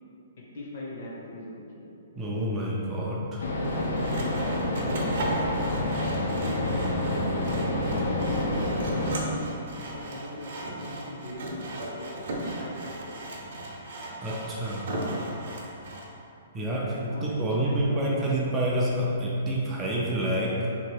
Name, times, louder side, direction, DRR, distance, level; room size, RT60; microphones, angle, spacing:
voice 1, 0.4-2.0 3.7-4.4 6.7-12.1 12.4-13.3 16.6-18.1, left 1 dB, 40° left, -4 dB, 0.8 m, -40 dB
voice 2, 2.2-3.4 14.2-14.9 16.5-20.7, right 1 dB, 10° right, -5 dB, 0.4 m, -28 dB
sound 1, 3.4-9.2, left 1 dB, 85° left, 0.7 m, -28 dB
Sawing, 3.6-16.1, right 1 dB, 50° right, 0.7 m, -36 dB
Bowed string instrument, 4.4-9.7, left 1 dB, 85° right, 0.7 m, -37 dB
3.5 x 2.9 x 4.6 m, 2.7 s
hypercardioid pair, 180°, 0 cm